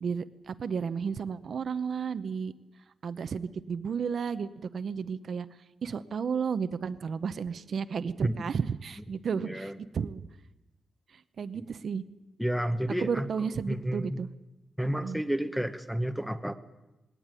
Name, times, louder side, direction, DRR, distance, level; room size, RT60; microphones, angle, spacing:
voice 1, 0.0-2.5 3.0-5.5 5.8-10.2 11.1-12.0 13.0-14.3 15.0-15.2, right 6 dB, 55° right, 12 dB, 0.8 m, -33 dB
voice 2, 9.3-9.8 11.5-11.7 12.4-14.2 14.8-16.5, equal, ahead, 8 dB, 1.0 m, -31 dB
19.5 x 18.0 x 9.0 m, 0.99 s
wide cardioid pair, 155°, 0 cm